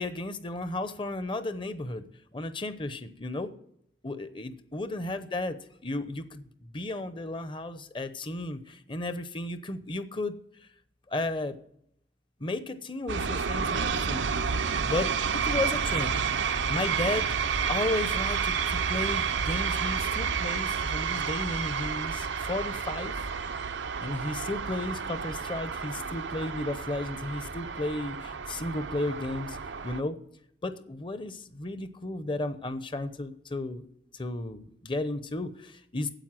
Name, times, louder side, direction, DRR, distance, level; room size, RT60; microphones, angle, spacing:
voice 1, 0.0-2.0 2.3-3.5 4.0-5.6 5.8-10.4 11.1-11.6 12.4-14.3 14.5-16.2 16.7-17.3 17.7-23.1 24.0-29.6 29.8-30.2 30.6-33.9 34.1-36.1, left 2 dB, 25° left, 11 dB, 0.8 m, -34 dB
sound 1, 13.1-30.0, right 6 dB, 85° right, 0.7 m, -30 dB
9.1 x 8.2 x 7.6 m, 0.73 s
head